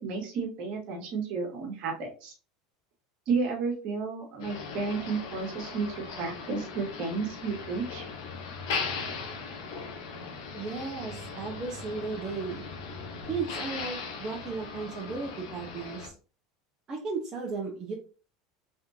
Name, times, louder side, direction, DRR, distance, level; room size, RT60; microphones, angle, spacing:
voice 1, 0.0-2.3 3.3-8.0, right 4 dB, 60° right, 1 dB, 1.7 m, -32 dB
Motor vehicle (road), 4.4-16.1, left 4 dB, 75° left, 1.3 m, -38 dB
voice 2, 10.5-12.6 13.3-16.1 16.9-17.9, right 4 dB, 35° right, -1 dB, 1.1 m, -35 dB
4.2 x 3.8 x 2.9 m, 0.36 s
hypercardioid pair, 90°, 2 cm